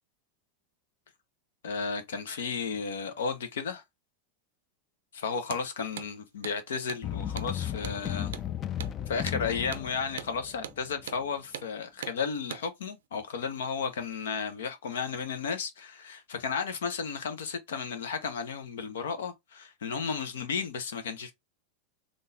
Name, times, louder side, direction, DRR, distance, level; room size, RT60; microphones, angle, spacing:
voice 1, 1.6-3.8 5.1-8.3 9.1-21.3, left 5 dB, 85° left, 0.8 m, -33 dB
Hammer, 5.4-5.7 6.0-6.1 6.4-6.6 6.9-7.0 7.4-7.5 7.8-8.0 8.3-8.5 8.8-9.0 9.3-9.4 9.7-9.9 10.2-10.3 10.6-10.8 11.1-11.2 11.5-11.7 12.0-12.2 12.5-12.7, right 10 dB, 85° right, 0.4 m, -40 dB
sound 1, 7.0-11.1, left 10 dB, 35° left, 0.3 m, -35 dB
3.8 x 2.5 x 2.7 m
hypercardioid pair, 110°, 0 cm